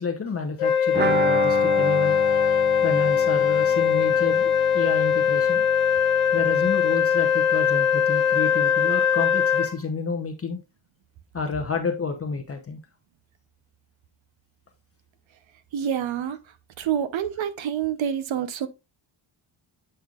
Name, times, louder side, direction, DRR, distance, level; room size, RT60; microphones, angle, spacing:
voice 1, 0.0-2.2 2.8-5.6 6.3-10.6 11.3-12.8, left 5 dB, 30° left, 0.7 m, -30 dB
Wind instrument woodwind instrument, 0.6-9.8, left 8 dB, 80° left, 1.0 m, -21 dB
sound 1, 0.9-6.6 6.8-6.9 7.2-7.3, right 4 dB, 25° right, 0.4 m, -31 dB
voice 2, 15.7-16.4 16.8-18.7, right 9 dB, 65° right, 0.8 m, -27 dB
7.8 x 5.4 x 2.4 m
wide cardioid pair, 170°, 49 cm